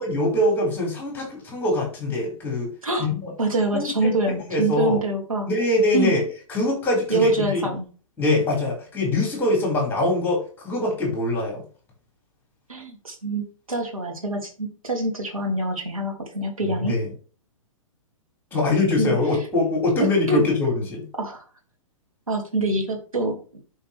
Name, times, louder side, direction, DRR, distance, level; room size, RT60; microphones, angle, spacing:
voice 1, 0.0-2.7 3.0-3.3 3.7-5.0 5.4-6.2 6.5-7.6 8.2-11.6 16.7-17.1 18.5-21.1, left 2 dB, 10° left, -1 dB, 5.6 m, -23 dB
voice 2, 3.4-5.5 5.9-6.1 7.1-7.8 12.7-17.0 19.0-19.2 20.0-20.4 21.2-21.4 22.3-23.4, right 2 dB, 80° right, 1 dB, 3.0 m, -25 dB
11.5 x 6.1 x 3.5 m, 0.38 s
figure-of-eight pair, 115°, 18 cm